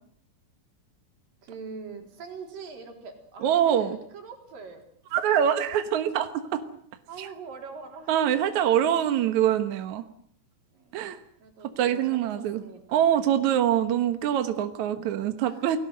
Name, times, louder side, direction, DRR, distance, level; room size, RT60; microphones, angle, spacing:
voice 1, 1.4-4.8 7.1-8.4 10.7-11.0 11.4-13.0 15.4-15.8, right 5 dB, 85° right, 3 dB, 5.7 m, -43 dB
voice 2, 3.4-4.0 5.1-6.6 7.2-7.3 8.1-10.0 10.9-11.2 11.8-12.6 12.9-15.8, right 10 dB, 65° right, 8 dB, 2.5 m, -24 dB
29.0 x 18.5 x 7.8 m, 0.64 s
omnidirectional pair, 3.9 m